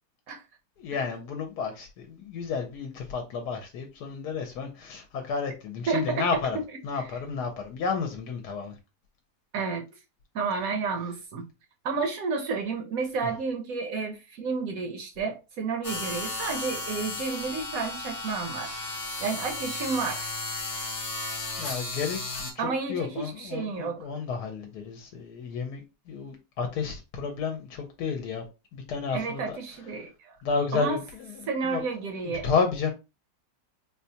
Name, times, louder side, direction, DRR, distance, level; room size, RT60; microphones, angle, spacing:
voice 1, 0.8-6.6 6.8-8.7 21.6-28.4 28.7-29.6 30.4-31.3 31.6-31.8 32.4-32.9, left 5 dB, 80° left, 1.2 m, -31 dB
voice 2, 5.9-6.2 6.9-7.1 9.5-9.9 10.3-11.5 11.8-18.8 19.2-20.3 22.6-24.1 29.1-30.4 30.7-31.0 31.5-32.5, right 4 dB, 65° right, 0.9 m, -31 dB
sound 1, 15.8-22.5, left 2 dB, 50° left, 0.4 m, -34 dB
4.0 x 2.2 x 2.7 m
omnidirectional pair, 1.8 m